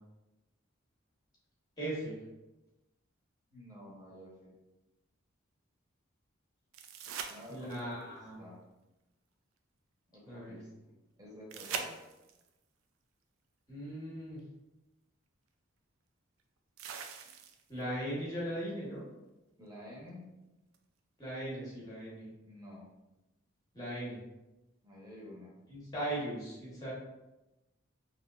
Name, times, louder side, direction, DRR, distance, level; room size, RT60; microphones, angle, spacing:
voice 1, 1.8-2.2 7.5-8.4 10.2-10.6 13.7-14.4 17.7-19.0 21.2-22.3 23.7-24.2 25.7-26.9, right 1 dB, 20° left, -6 dB, 1.0 m, -38 dB
voice 2, 3.5-4.5 7.3-8.6 10.1-11.9 19.6-20.3 22.4-22.9 24.8-25.6, left 1 dB, 20° right, -5 dB, 0.9 m, -50 dB
sound 1, 6.7-8.0 11.5-12.5 14.4-14.5 16.8-17.8 20.7-20.8, right 6 dB, 85° right, 0.3 m, -42 dB
3.0 x 2.9 x 2.4 m, 0.99 s
head